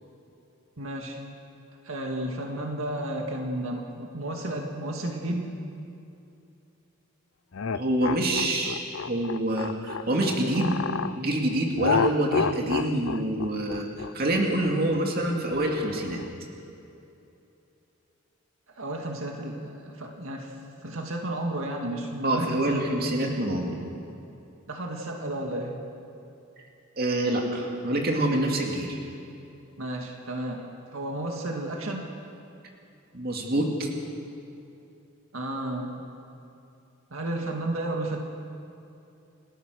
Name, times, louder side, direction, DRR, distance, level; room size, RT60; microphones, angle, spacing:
voice 1, 0.8-1.2 1.8-5.5 18.7-20.6 20.8-22.8 24.7-25.8 29.8-30.7 30.9-32.1 35.3-36.0 37.1-38.2, right 1 dB, 80° right, 1 dB, 2.1 m, -32 dB
sound 1, 7.5-11.2 11.8-16.3, left 5 dB, 70° left, 0.6 m, -30 dB
voice 2, 7.7-10.8 11.2-13.9 14.1-16.2 22.2-23.7 27.0-29.0 33.1-33.9, right 1 dB, 45° right, 0 dB, 2.5 m, -26 dB
29.5 x 14.0 x 6.4 m, 2.8 s
head